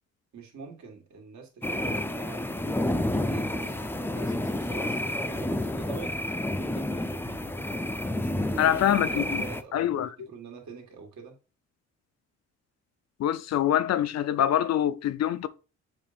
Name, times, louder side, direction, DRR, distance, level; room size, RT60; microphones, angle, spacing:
voice 1, 0.3-7.4 8.1-11.4, right 5 dB, 70° right, 2.1 m, -45 dB
sound 1, 1.6-9.6, left 1 dB, 5° left, 0.5 m, -30 dB
voice 2, 8.6-9.4 9.7-10.1 13.2-15.5, left 10 dB, 60° left, 0.5 m, -25 dB
7.2 x 2.6 x 5.1 m
cardioid pair, 90°, 30 cm